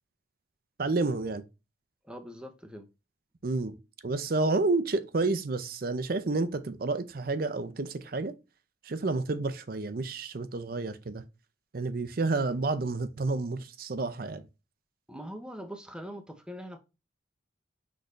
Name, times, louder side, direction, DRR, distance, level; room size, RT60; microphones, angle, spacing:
voice 1, 0.8-1.4 3.4-3.7 4.0-8.3 8.8-11.2 11.7-14.4, right 3 dB, 50° right, 0.5 m, -30 dB
voice 2, 2.0-2.9 15.1-16.8, equal, 5° right, 0.6 m, -42 dB
6.2 x 3.2 x 2.5 m
head